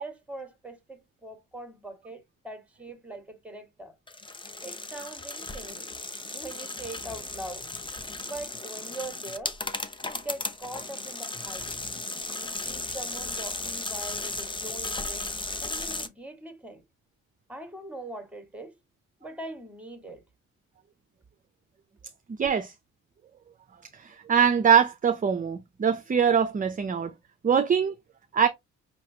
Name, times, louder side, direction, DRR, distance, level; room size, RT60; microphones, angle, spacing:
voice 1, 0.0-3.9 4.6-5.8 6.3-7.7 8.2-9.6 10.0-11.7 12.3-16.8 17.5-18.7 19.2-20.2, right 2 dB, 5° right, 1.6 m, -42 dB
sound 1, 4.1-16.1, left 3 dB, 15° left, 0.7 m, -35 dB
voice 2, 22.4-22.7 23.9-27.1 27.4-27.9 28.3-28.5, right 7 dB, 30° right, 0.6 m, -23 dB
5.8 x 3.0 x 2.7 m
cardioid pair, 90°, 30 cm